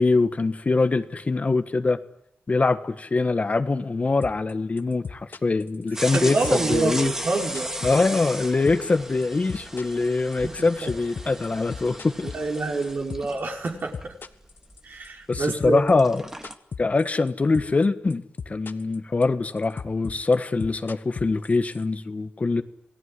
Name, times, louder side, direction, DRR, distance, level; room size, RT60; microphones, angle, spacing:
voice 1, 0.0-2.0 2.5-7.1 7.8-12.3 15.3-16.2 16.8-22.6, left 3 dB, 35° left, 9 dB, 1.5 m, -23 dB
sound 1, 4.2-4.5 4.8-6.2 6.4-8.4 8.7-9.0 9.2-13.4 13.7-15.1 15.3-17.3 17.5-17.8 18.1-19.0 19.2-21.8, left 5 dB, 65° left, 1.5 m, -36 dB
sound 2, 5.9-15.5 15.8-16.5, right 1 dB, 10° right, 2.0 m, -36 dB
voice 2, 6.1-7.7 10.4-10.9 12.2-14.1 14.8-15.8, right 3 dB, 55° right, 1 dB, 5.0 m, -27 dB
28.5 x 18.5 x 9.7 m, 0.79 s
wide cardioid pair, 95°, 4 cm